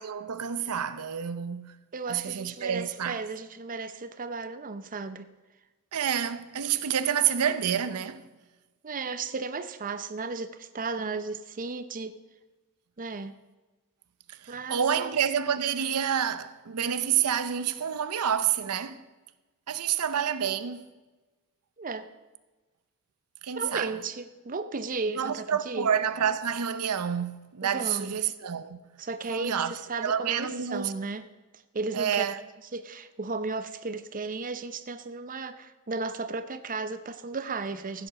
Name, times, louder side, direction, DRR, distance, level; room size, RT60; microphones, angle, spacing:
voice 1, 0.0-1.8 2.1-3.2 5.9-8.2 14.4-19.0 19.7-20.9 23.4-23.9 25.2-28.8 29.3-30.9 31.9-32.4, right 8 dB, 85° right, 0.7 m, -28 dB
voice 2, 1.9-5.3 8.8-12.2 13.0-13.3 14.5-15.1 21.8-22.1 23.6-25.9 27.6-28.1 29.0-31.2 31.7-32.2 32.7-38.1, right 3 dB, 40° right, 0.7 m, -34 dB
15.0 x 7.7 x 6.3 m
head